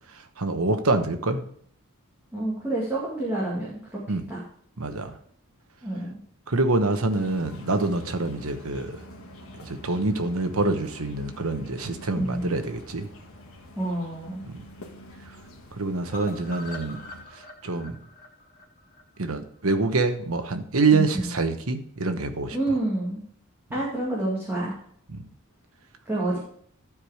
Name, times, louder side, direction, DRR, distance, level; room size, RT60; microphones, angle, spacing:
voice 1, 0.4-1.4 4.1-4.2 4.8-5.1 6.5-8.9 9.7-13.1 14.5-14.6 15.8-17.0 17.6-18.0 19.2-22.6 25.1-25.2, right 3 dB, 75° right, 7 dB, 1.1 m, -26 dB
voice 2, 2.3-4.0 4.3-4.4 5.8-6.2 12.1-12.5 13.8-14.4 20.9-21.3 22.5-23.2 23.7-24.7 26.1-26.4, right 1 dB, 10° right, -7 dB, 2.1 m, -28 dB
sound 1, 7.1-17.2, left 1 dB, 70° left, 1.6 m, -46 dB
sound 2, 16.1-20.1 20.5-20.6 20.9-21.0 21.2-21.3, left 2 dB, 40° left, 1.6 m, -44 dB
12.5 x 4.9 x 4.9 m, 0.63 s
head